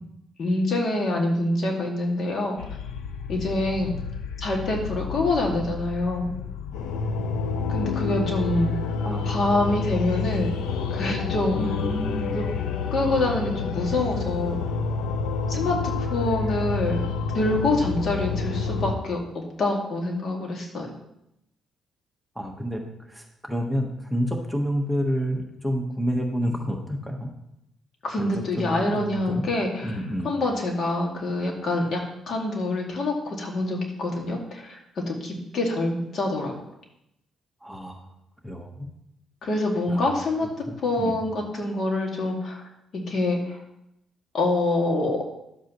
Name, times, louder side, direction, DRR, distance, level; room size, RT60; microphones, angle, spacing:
voice 1, 0.4-2.6 3.3-3.9 4.4-6.3 7.7-8.7 9.2-10.5 10.9-11.6 12.3-12.4 12.9-14.6 15.5-17.0 17.3-20.9 28.0-29.9 30.2-32.0 32.3-34.8 35.1-36.5 39.4-40.5 40.8-42.6 42.9-43.6 44.3-45.2, left 2 dB, 55° left, 0 dB, 2.1 m, -26 dB
sound 1, 2.6-18.9, left 5 dB, 90° left, 0.7 m, -29 dB
voice 2, 9.0-9.4 11.6-12.4 22.3-22.8 23.1-27.3 28.2-29.4 29.8-30.3 37.6-38.1 38.4-38.9 39.9-40.1 40.7-41.2, equal, ahead, 2 dB, 1.2 m, -29 dB
11.5 x 7.8 x 3.1 m, 0.83 s
cardioid pair, 90°, 0 cm